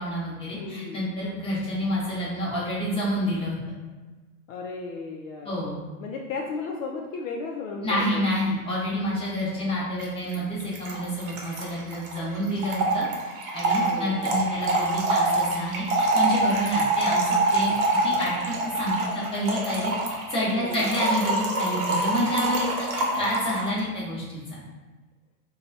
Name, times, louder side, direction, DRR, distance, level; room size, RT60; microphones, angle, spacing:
voice 1, 0.0-3.6 5.4-5.8 7.8-13.1 13.5-22.7 22.9-24.6, equal, 10° left, -8 dB, 0.9 m, -28 dB
voice 2, 0.5-1.0 4.5-5.6 6.0-8.2 13.8-14.4 20.5-20.9, left 4 dB, 60° left, 0 dB, 0.5 m, -35 dB
Trickle dribble / Fill (with liquid), 10.0-10.1 10.3-10.4 10.6-23.7, right 2 dB, 65° right, 0.8 m, -26 dB
2.9 x 2.3 x 2.6 m, 1.2 s
hypercardioid pair, 125°, 45 cm